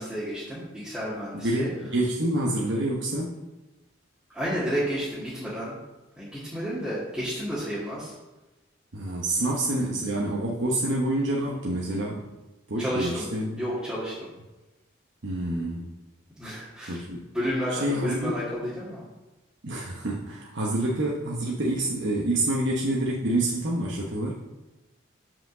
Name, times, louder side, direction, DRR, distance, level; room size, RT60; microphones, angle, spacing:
voice 1, 0.0-1.7 4.3-5.8 6.2-8.1 12.8-13.3 13.6-14.3 16.4-17.0 17.3-19.0, equal, 5° right, -11 dB, 1.8 m, -31 dB
voice 2, 1.3-1.6 1.9-3.4 8.9-12.3 12.7-13.6 15.2-15.8 16.9-17.2 17.7-18.3 19.6-24.4, right 1 dB, 65° right, -3 dB, 1.0 m, -27 dB
5.8 x 5.1 x 6.7 m, 1.1 s
head